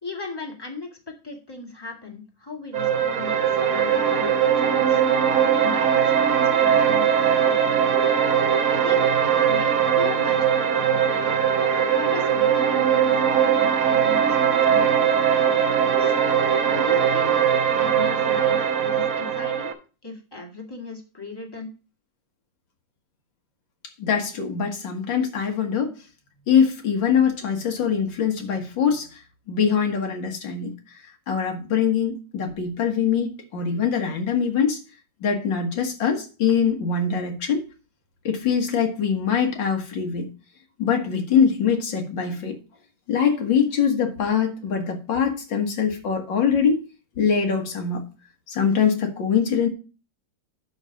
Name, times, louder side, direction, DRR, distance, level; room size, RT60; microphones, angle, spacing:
voice 1, 0.0-5.0 5.5-7.8 8.6-11.3 12.0-16.1 16.6-17.4 17.7-19.7 20.0-21.7, left 4 dB, 15° left, 1.8 m, -37 dB
sound 1, 2.7-19.7, right 8 dB, 55° right, 1.3 m, -20 dB
voice 2, 24.0-26.0 26.5-29.1 29.5-30.7 31.3-34.8 35.2-37.6 38.2-40.3 40.8-42.5 43.1-46.8 47.2-48.0 48.5-49.7, left 7 dB, 85° left, 2.3 m, -23 dB
11.5 x 4.1 x 5.0 m
omnidirectional pair, 2.0 m